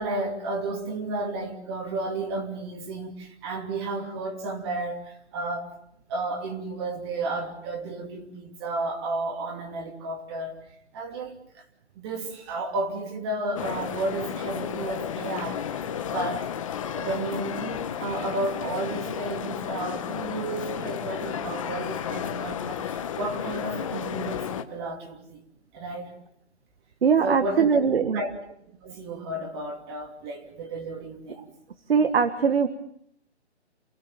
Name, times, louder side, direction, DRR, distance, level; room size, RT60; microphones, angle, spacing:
voice 1, 0.0-5.7 6.1-10.6 10.9-11.6 11.9-16.5 16.9-25.4 25.7-26.1 27.2-27.8 28.1-28.3 28.8-31.5, right 2 dB, 25° right, 4 dB, 2.8 m, -32 dB
sound 1, 13.6-24.6, left 8 dB, 30° left, 1.1 m, -32 dB
voice 2, 27.0-28.2 31.9-32.7, right 6 dB, 60° right, 9 dB, 1.7 m, -21 dB
29.0 x 16.5 x 7.4 m, 0.73 s
hypercardioid pair, 165°, 34 cm